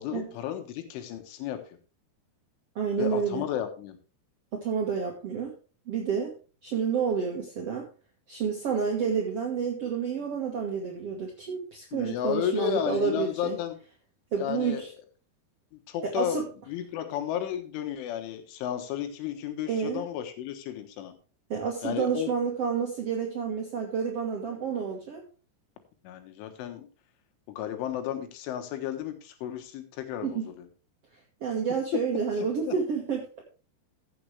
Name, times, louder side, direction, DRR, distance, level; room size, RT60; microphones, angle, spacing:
voice 1, 0.0-1.6 3.0-4.0 11.9-13.8 14.4-14.8 15.7-21.1 21.8-22.3 26.0-26.9 27.5-30.7 32.7-32.8, left 10 dB, 85° left, 7 dB, 3.8 m, -33 dB
voice 2, 2.7-3.4 4.5-5.5 5.9-6.3 6.6-7.9 8.3-13.6 14.3-14.9 16.0-16.4 19.7-20.0 21.5-25.2 30.2-30.4 31.4-33.2, right 6 dB, 70° right, 0 dB, 1.4 m, -29 dB
15.5 x 7.7 x 3.3 m, 0.35 s
omnidirectional pair, 5.4 m